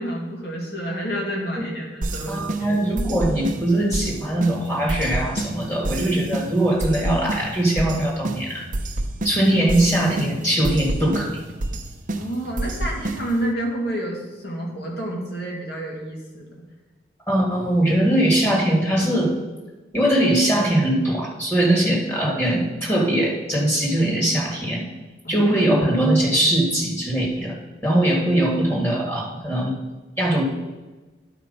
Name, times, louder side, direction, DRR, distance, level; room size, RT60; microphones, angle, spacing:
voice 1, 0.0-2.8 12.1-16.5 25.2-25.5, right 1 dB, 60° left, -2 dB, 2.1 m, -29 dB
sound 1, 2.0-13.5, right 1 dB, 45° right, 0.6 m, -30 dB
voice 2, 2.3-8.7 9.2-11.3 17.3-19.3 19.9-24.9 25.3-27.6 27.8-29.8 30.2-30.4, right 1 dB, 15° left, -2 dB, 1.7 m, -21 dB
11.0 x 4.5 x 5.2 m, 1.2 s
head